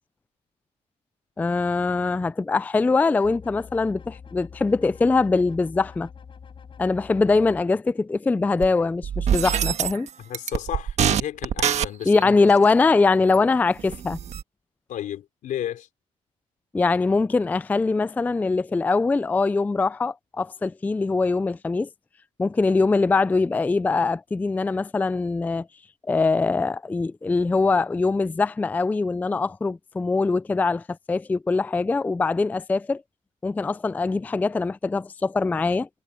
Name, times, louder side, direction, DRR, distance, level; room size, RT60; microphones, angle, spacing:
voice 1, 1.4-6.1 6.8-10.1 12.1-14.2 16.7-21.9 22.4-25.7 26.1-33.0 33.4-35.9, left 3 dB, 10° left, 0.3 m, -22 dB
sound 1, 3.2-7.6, left 6 dB, 40° left, 6.2 m, -45 dB
sound 2, 8.6-8.7 9.0-10.1 10.3-12.2 13.3-13.4 13.8-14.4, right 8 dB, 60° right, 1.5 m, -24 dB
voice 2, 10.2-12.5 14.9-15.9, left 11 dB, 80° left, 4.6 m, -33 dB
cardioid pair, 140°, 13 cm